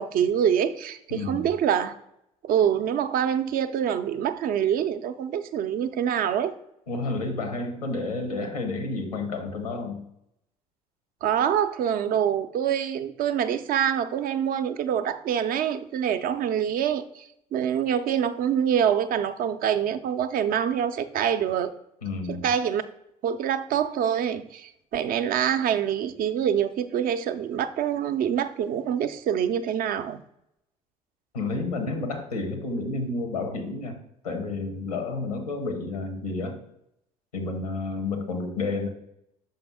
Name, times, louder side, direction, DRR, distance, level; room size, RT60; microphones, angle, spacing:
voice 1, 0.0-1.9 2.4-6.5 11.2-21.7 22.3-22.8 23.2-30.2, right 9 dB, 50° right, 11 dB, 0.5 m, -25 dB
voice 2, 1.1-1.5 6.9-10.0 22.0-22.5 31.3-34.0 34.2-36.6 37.3-38.9, left 3 dB, 90° left, 5 dB, 0.8 m, -30 dB
5.8 x 5.3 x 3.5 m, 0.78 s
figure-of-eight pair, 50°, 19 cm